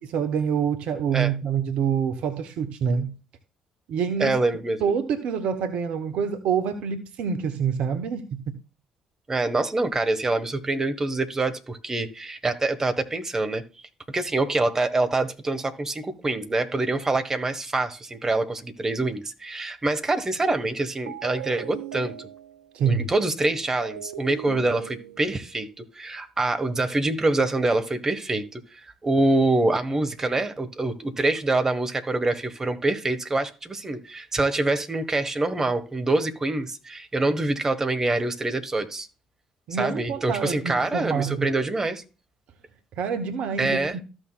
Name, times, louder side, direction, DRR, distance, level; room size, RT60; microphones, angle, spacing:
voice 1, 0.1-3.1 3.9-4.4 4.8-8.4 22.7-23.1 39.7-41.5 43.0-44.0, right 7 dB, 60° right, 1.0 m, -26 dB
voice 2, 4.2-4.8 9.3-13.6 14.1-22.1 22.8-39.1 39.8-42.0 43.6-44.0, right 2 dB, 25° right, 1.4 m, -25 dB
sound 1, 21.1-22.8 23.8-25.5, right 12 dB, 80° right, 0.3 m, -38 dB
14.0 x 6.4 x 2.4 m
figure-of-eight pair, 50°, 2 cm